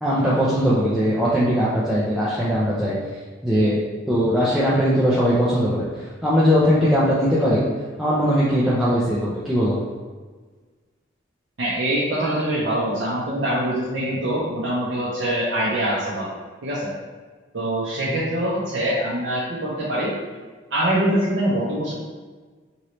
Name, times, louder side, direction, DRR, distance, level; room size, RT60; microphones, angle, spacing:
voice 1, 0.0-3.0 3.4-3.8 4.1-7.6 8.0-9.8 18.1-18.2, equal, ahead, -10 dB, 0.4 m, -20 dB
voice 2, 11.6-16.3 16.6-16.9 17.5-20.1 20.7-21.9, right 1 dB, 60° right, -7 dB, 0.5 m, -24 dB
3.0 x 2.7 x 2.9 m, 1.4 s
head